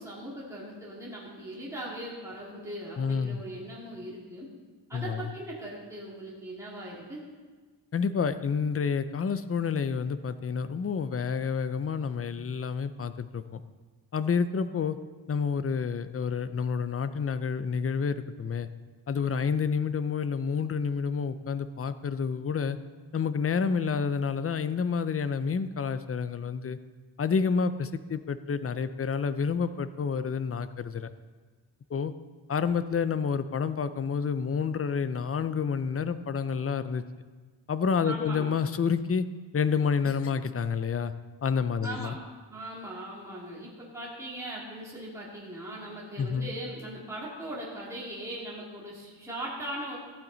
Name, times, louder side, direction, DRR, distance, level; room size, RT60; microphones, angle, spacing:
voice 1, 0.0-4.5 4.9-7.2 38.0-38.6 41.8-42.2 42.5-50.0, right 1 dB, 5° right, -6 dB, 2.1 m, -39 dB
voice 2, 3.0-3.4 4.9-5.3 7.9-13.6 14.1-15.0 15.3-18.7 19.1-22.8 23.1-26.8 27.2-31.1 31.9-32.1 32.5-37.0 37.7-39.3 39.5-41.1 41.4-42.1 46.2-46.5, left 6 dB, 35° left, 12 dB, 0.4 m, -29 dB
15.0 x 8.9 x 3.9 m, 1.4 s
wide cardioid pair, 150°, 44 cm